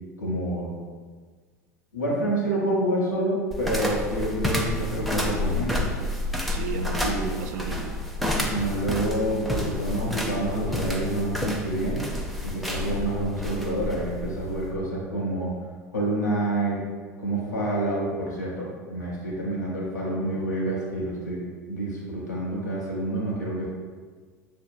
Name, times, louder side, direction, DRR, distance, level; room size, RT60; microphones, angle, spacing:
voice 1, 0.2-0.7 1.9-5.9 7.0-7.3 8.4-12.0 12.4-15.5 15.9-16.8 17.2-21.4 21.7-23.7, right 1 dB, 85° left, -4 dB, 0.8 m, -28 dB
sound 1, 3.5-14.8, left 1 dB, ahead, 0.5 m, -30 dB
voice 2, 6.5-7.9 12.8-12.9, right 6 dB, 70° right, 5 dB, 0.4 m, -35 dB
6.2 x 2.8 x 2.2 m, 1.5 s
figure-of-eight pair, 80°, 9 cm